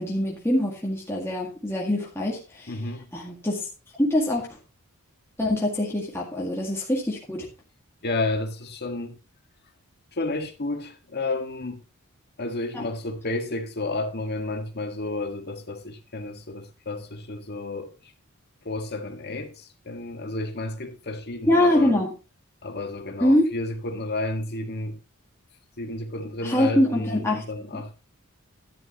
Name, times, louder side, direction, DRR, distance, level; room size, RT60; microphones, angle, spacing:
voice 1, 0.0-2.7 3.1-3.7 4.0-4.5 5.4-7.5 12.7-12.8 21.4-22.1 23.2-23.5 26.4-27.4 27.7-28.0, left 1 dB, 10° left, 2.0 m, -24 dB
voice 2, 2.7-3.1 8.0-9.2 10.1-11.8 12.4-17.9 18.7-22.0 22.6-25.0 25.8-28.0, left 2 dB, 50° left, 1.7 m, -31 dB
11.5 x 10.5 x 3.0 m
head